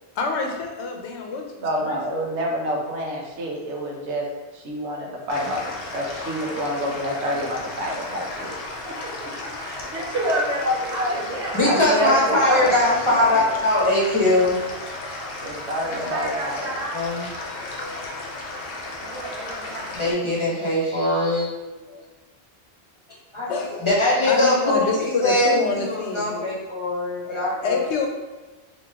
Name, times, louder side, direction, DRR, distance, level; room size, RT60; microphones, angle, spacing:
voice 1, 0.2-2.0 17.6-18.1 21.0-21.1 21.9-22.0 23.5-23.8 24.2-26.4 27.4-28.1, left 4 dB, 90° left, 2 dB, 0.9 m, -27 dB
voice 2, 1.6-4.2 4.5-5.6 5.9-8.5 8.8-8.9 9.2-9.3 9.6-11.2 11.6-13.4 15.4-16.7, equal, 85° right, -1 dB, 1.1 m, -27 dB
sound 1, 5.3-20.1, left 2 dB, 65° left, 0.8 m, -34 dB
voice 3, 10.2-12.8 15.9-17.0 19.0-20.3 23.3-23.8, right 1 dB, 60° right, -5 dB, 1.1 m, -35 dB
voice 4, 11.5-14.6 16.9-17.8 19.9-21.5 23.3-27.8, left 1 dB, 30° left, -6 dB, 0.9 m, -22 dB
3.0 x 2.8 x 3.4 m, 1.2 s
omnidirectional pair, 1.1 m